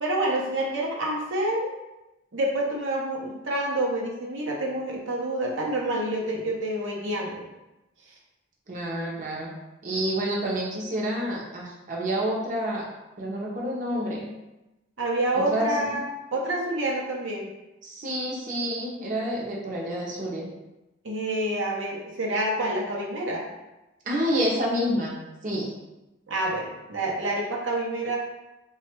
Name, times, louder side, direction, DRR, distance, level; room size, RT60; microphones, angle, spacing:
voice 1, 0.0-1.7 2.3-7.4 15.0-16.0 16.3-17.5 21.0-23.4 26.3-28.2, right 1 dB, 80° right, -2 dB, 0.7 m, -28 dB
voice 2, 8.7-9.5 9.8-12.8 13.2-14.3 15.3-16.0 17.8-20.5 24.0-25.7, equal, 45° right, -3 dB, 0.7 m, -28 dB
3.2 x 2.4 x 4.4 m, 0.98 s
head